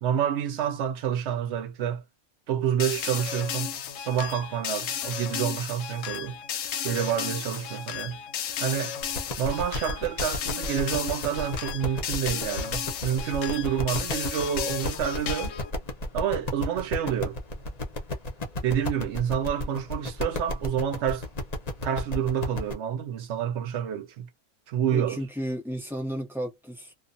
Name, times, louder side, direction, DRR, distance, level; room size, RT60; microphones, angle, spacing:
voice 1, 0.0-2.0 2.5-3.7 4.0-6.4 6.8-8.2 8.6-8.9 9.4-15.5 16.1-17.4 18.6-21.2 21.8-24.3 24.7-25.2, right 9 dB, 70° right, 0.7 m, -28 dB
sound 1, 2.8-15.7, left 8 dB, 65° left, 0.8 m, -34 dB
sound 2, 9.0-22.7, left 1 dB, 45° left, 0.5 m, -33 dB
voice 2, 24.9-26.9, equal, ahead, 0.6 m, -33 dB
2.4 x 2.3 x 2.5 m
omnidirectional pair, 1.6 m